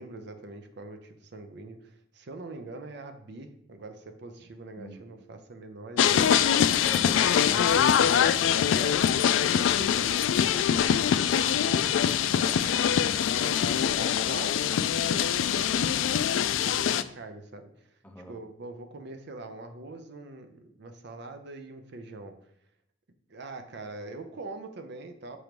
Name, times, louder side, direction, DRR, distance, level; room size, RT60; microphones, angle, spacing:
voice 1, 0.0-6.8 7.1-7.4 8.6-12.9 13.4-18.0 18.3-22.4 23.3-25.4, right 2 dB, 60° right, 7 dB, 0.6 m, -43 dB
sound 1, 6.0-17.0, left 9 dB, 80° left, 0.3 m, -24 dB
voice 2, 6.8-8.7 18.0-18.3, left 1 dB, 10° left, 4 dB, 0.5 m, -43 dB
6.1 x 3.0 x 5.1 m, 0.72 s
head